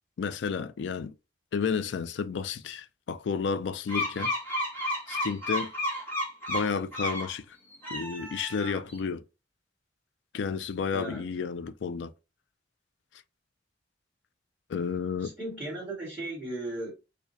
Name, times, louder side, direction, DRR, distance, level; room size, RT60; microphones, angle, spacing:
voice 1, 0.2-1.1 1.5-4.3 5.1-5.7 6.5-7.6 7.9-9.2 10.3-12.1 14.7-15.3, left 5 dB, 75° left, 0.4 m, -31 dB
sound 1, 3.9-7.3 7.7-9.0, left 1 dB, 10° left, 1.1 m, -32 dB
voice 2, 10.9-11.2 15.2-16.9, right 1 dB, 10° right, 1.6 m, -36 dB
4.8 x 2.2 x 2.6 m
head